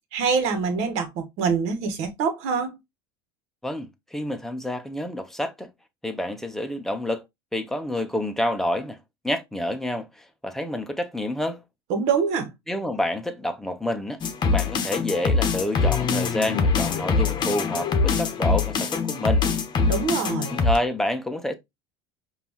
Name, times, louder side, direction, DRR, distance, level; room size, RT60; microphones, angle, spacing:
voice 1, 0.1-2.7 11.9-12.5 19.9-20.5, right 5 dB, 60° right, 1.4 m, -25 dB
voice 2, 3.6-5.7 6.0-7.2 7.5-9.0 9.2-11.6 12.7-14.2 14.5-19.5 20.5-21.6, left 1 dB, 5° left, 0.9 m, -28 dB
sound 1, 14.2-20.8, left 4 dB, 35° left, 1.0 m, -23 dB
5.2 x 2.7 x 3.0 m
hypercardioid pair, 85°, 13 cm